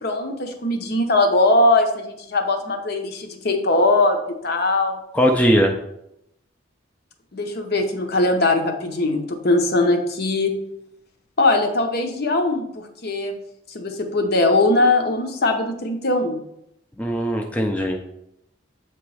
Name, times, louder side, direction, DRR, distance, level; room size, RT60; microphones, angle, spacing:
voice 1, 0.0-4.2 4.4-5.0 7.3-10.5 11.4-13.4 13.7-16.4, left 2 dB, 50° left, 5 dB, 0.8 m, -20 dB
voice 2, 5.1-5.7 17.0-18.1, equal, 5° left, 1 dB, 0.4 m, -19 dB
7.6 x 3.0 x 4.8 m, 0.79 s
head